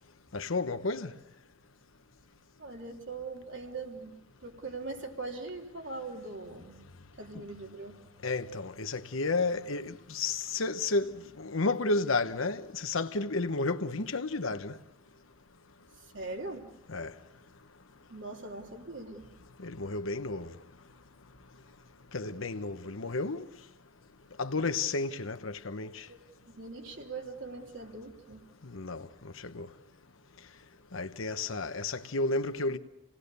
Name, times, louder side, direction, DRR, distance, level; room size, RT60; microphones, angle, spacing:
voice 1, 0.3-1.1 7.3-7.4 8.2-14.8 16.9-17.1 19.6-20.5 22.1-23.5 24.4-26.0 28.6-29.1 29.4-29.7 30.9-32.8, left 3 dB, 80° left, 1.1 m, -32 dB
voice 2, 2.6-4.1 4.4-6.8 7.2-7.9 16.0-16.6 18.1-19.3 26.1-26.2 26.5-28.4, right 3 dB, 65° right, 3.2 m, -41 dB
29.5 x 18.5 x 6.8 m
head